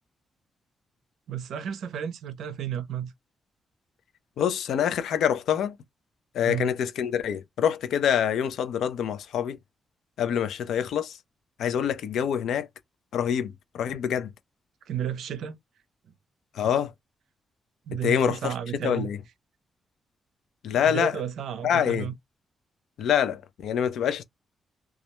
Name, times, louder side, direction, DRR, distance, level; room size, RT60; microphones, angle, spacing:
voice 1, 1.3-3.1 6.4-6.7 14.9-15.6 17.9-19.1 20.8-22.1, right 9 dB, 80° right, 0.4 m, -32 dB
voice 2, 4.4-5.7 6.3-9.6 10.2-11.2 11.6-12.7 13.1-14.3 16.5-16.9 17.9-18.5 18.8-19.2 20.6-21.2 21.6-22.1 23.0-24.2, left 8 dB, 85° left, 0.4 m, -26 dB
2.3 x 2.1 x 2.9 m
wide cardioid pair, 170°, 0 cm